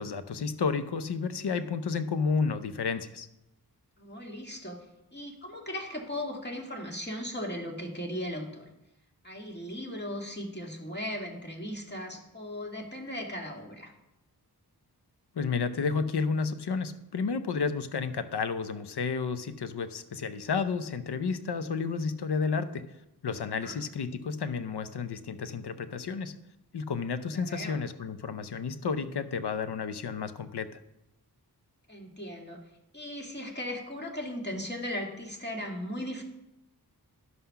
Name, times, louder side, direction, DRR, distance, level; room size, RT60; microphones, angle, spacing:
voice 1, 0.0-3.3 15.3-22.9 23.2-26.4 26.7-30.8, left 5 dB, 85° left, 11 dB, 0.7 m, -31 dB
voice 2, 4.0-4.9 5.1-8.7 9.2-13.9 23.4-23.8 27.3-27.8 31.9-32.6 32.9-36.2, left 1 dB, 25° left, 1 dB, 1.9 m, -37 dB
11.0 x 5.6 x 5.8 m, 0.88 s
wide cardioid pair, 70°, 39 cm